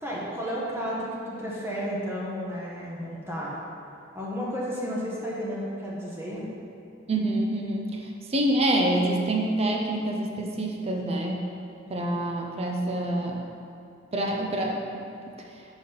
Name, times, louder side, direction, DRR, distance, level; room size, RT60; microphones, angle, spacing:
voice 1, 0.0-3.6 4.1-6.5, equal, 15° right, -6 dB, 1.0 m, -32 dB
voice 2, 7.1-11.4 11.9-13.4 14.1-15.3, right 1 dB, 30° right, 0 dB, 0.6 m, -27 dB
5.0 x 3.8 x 5.5 m, 2.5 s
head